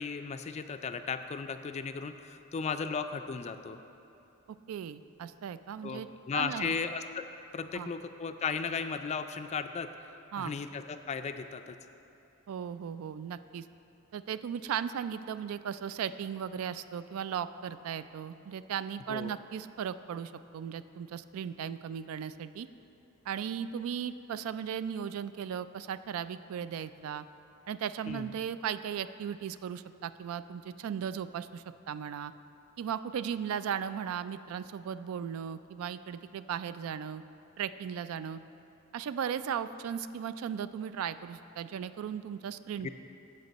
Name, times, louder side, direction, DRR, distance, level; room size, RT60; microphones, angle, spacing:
voice 1, 0.0-3.8 5.8-7.2 7.5-9.9 10.4-11.8 19.1-19.3 28.1-28.3 42.8-42.9, left 5 dB, 30° left, 9 dB, 0.3 m, -35 dB
voice 2, 4.7-6.1 6.3-6.7 7.7-7.9 10.3-10.5 12.5-13.6 14.1-22.7 23.3-27.3 27.7-32.3 32.8-37.2 37.6-38.4 38.9-42.9, right 8 dB, 75° right, 13 dB, 0.3 m, -37 dB
14.0 x 5.3 x 4.0 m, 2.8 s
head